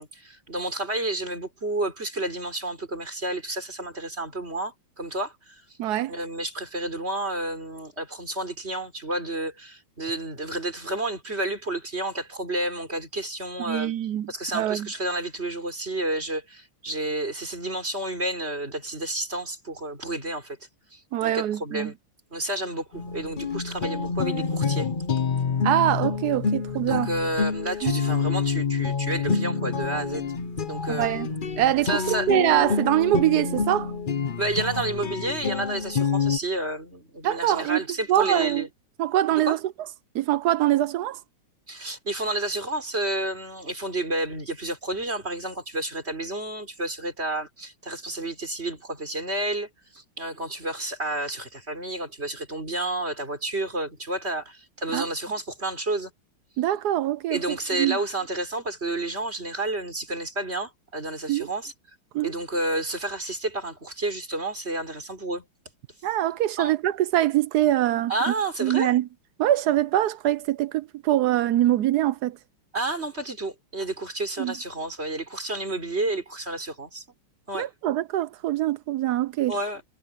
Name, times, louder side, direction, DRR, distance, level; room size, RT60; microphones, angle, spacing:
voice 1, 0.0-5.6 6.1-13.9 14.3-20.6 20.9-21.9 22.3-24.9 26.7-30.3 30.6-31.4 31.8-32.3 34.4-38.7 39.3-39.6 41.7-56.1 57.3-61.7 62.2-65.4 66.6-66.7 68.1-68.9 72.7-77.0 77.5-77.7 79.5-79.8, right 2 dB, 30° right, 4.8 m, -30 dB
voice 2, 5.8-6.1 13.7-14.9 21.1-21.9 25.6-27.1 27.8-27.9 30.9-31.3 31.6-33.9 37.2-37.8 38.1-38.7 39.0-39.6 40.1-41.2 54.9-55.1 56.6-58.0 61.3-61.5 62.1-62.3 66.0-68.3 68.6-69.1 69.4-72.4 74.4-74.5 77.5-79.5, right 13 dB, 70° right, 0.9 m, -24 dB
sound 1, 22.9-36.4, left 5 dB, 45° left, 0.7 m, -27 dB
omnidirectional pair, 2.2 m